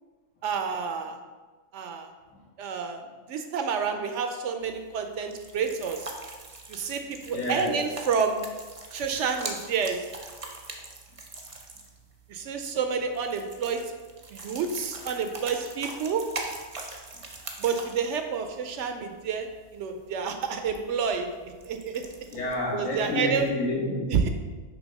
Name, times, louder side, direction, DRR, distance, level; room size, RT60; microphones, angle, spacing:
voice 1, 0.4-1.2 1.7-2.1 2.6-3.0 3.3-6.1 6.7-8.4 8.9-10.0 12.3-13.8 14.3-16.3 17.6-21.3 21.6-22.0 22.7-23.4 24.1-24.3, right 6 dB, 70° right, 6 dB, 0.8 m, -29 dB
sound 1, 4.6-23.1, right 2 dB, 35° right, 0.6 m, -43 dB
voice 2, 7.3-7.9 11.1-11.2 17.1-17.3 22.3-24.3, left 1 dB, 80° left, -6 dB, 2.1 m, -30 dB
6.2 x 3.3 x 5.2 m, 1.3 s
omnidirectional pair, 1.4 m